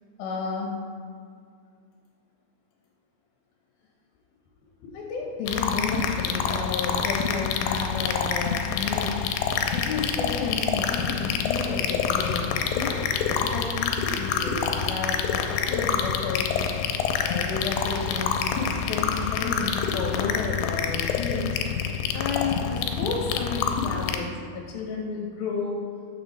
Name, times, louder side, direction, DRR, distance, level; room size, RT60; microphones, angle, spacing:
voice 1, 0.2-0.8 4.8-9.3 9.6-13.0 13.3-16.6 17.3-21.6 22.1-25.8, left 4 dB, 70° left, -1 dB, 2.6 m, -32 dB
sound 1, 5.5-24.2, left 7 dB, 90° left, 2.7 m, -27 dB
12.5 x 6.9 x 3.1 m, 2.1 s
omnidirectional pair, 4.7 m